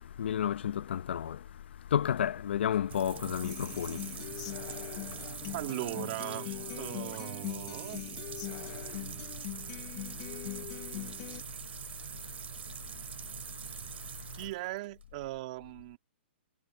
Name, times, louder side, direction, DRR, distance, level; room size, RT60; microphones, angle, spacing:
voice 1, 0.2-1.4 1.9-4.0, left 9 dB, 65° left, 0.7 m, -31 dB
sound 1, 2.6-15.0, right 9 dB, 65° right, 6.7 m, -43 dB
Human voice / Acoustic guitar, 3.4-11.4, left 23 dB, 30° left, 0.8 m, -42 dB
voice 2, 5.5-8.0 14.3-16.0, right 18 dB, 35° right, 1.9 m, -39 dB
hypercardioid pair, 165°, 6 cm